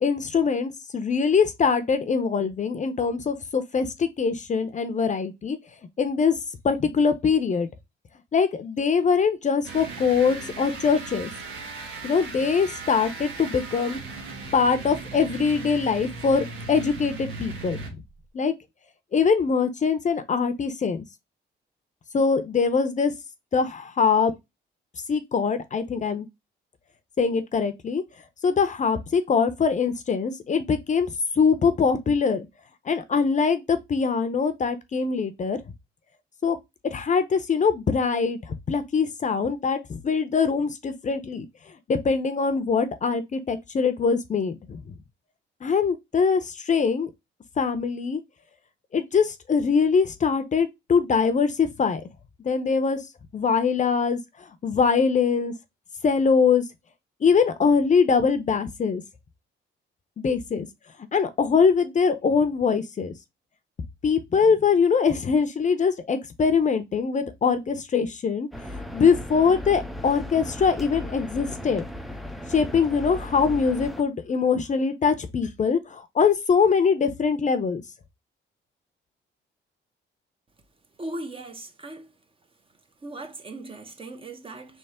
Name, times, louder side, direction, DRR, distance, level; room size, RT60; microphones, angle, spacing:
voice 1, 0.0-5.6 6.0-6.4 6.6-7.7 8.3-11.3 12.0-14.0 14.5-18.0 18.3-18.5 19.1-21.0 22.1-23.1 23.5-24.3 25.1-26.3 27.2-28.0 28.4-32.5 32.8-35.6 36.4-36.6 36.8-41.4 41.9-45.0 45.6-47.1 47.6-48.2 48.9-52.0 52.4-53.0 53.3-55.5 56.0-56.6 57.2-59.0 60.2-60.7 61.1-63.1 64.0-71.9 72.5-77.8, left 5 dB, 40° left, 0.7 m, -23 dB
sound 1, 9.6-18.2, right 4 dB, 85° right, 1.3 m, -38 dB
sound 2, 68.5-74.0, left 1 dB, ahead, 0.5 m, -36 dB
voice 2, 81.0-82.1 83.0-84.8, right 2 dB, 25° right, 0.8 m, -38 dB
3.4 x 3.1 x 4.2 m
cardioid pair, 90°, 20 cm